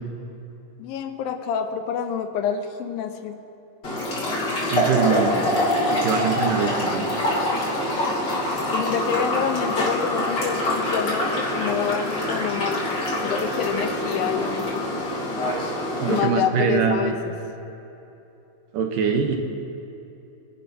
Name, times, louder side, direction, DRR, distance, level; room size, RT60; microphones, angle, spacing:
voice 1, 0.8-3.4 8.7-12.8 13.2-14.8 16.1-17.3, left 7 dB, 80° left, 7 dB, 2.6 m, -27 dB
sound 1, 3.8-16.2, left 1 dB, 30° left, 3.0 m, -25 dB
voice 2, 4.7-5.6 5.9-7.1 16.0-17.1 18.7-19.4, right 6 dB, 75° right, 3 dB, 2.5 m, -23 dB
25.5 x 11.5 x 2.8 m, 2.9 s
omnidirectional pair, 4.1 m